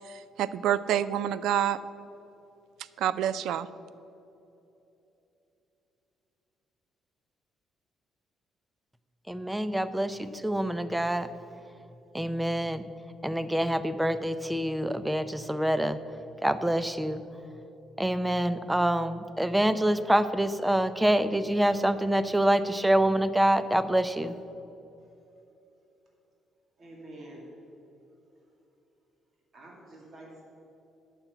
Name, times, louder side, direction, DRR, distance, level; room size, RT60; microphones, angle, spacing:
voice 1, 0.1-1.8 3.0-3.7, right 10 dB, 75° right, 16 dB, 0.4 m, -27 dB
voice 2, 9.3-11.3 12.1-12.8 13.2-16.0 16.4-17.2 18.0-24.3, right 1 dB, 5° right, 13 dB, 0.4 m, -26 dB
voice 3, 26.8-27.5 29.5-30.4, right 1 dB, 40° right, -2 dB, 2.2 m, -47 dB
11.5 x 6.0 x 8.0 m, 3.0 s
cardioid pair, 145°, 0 cm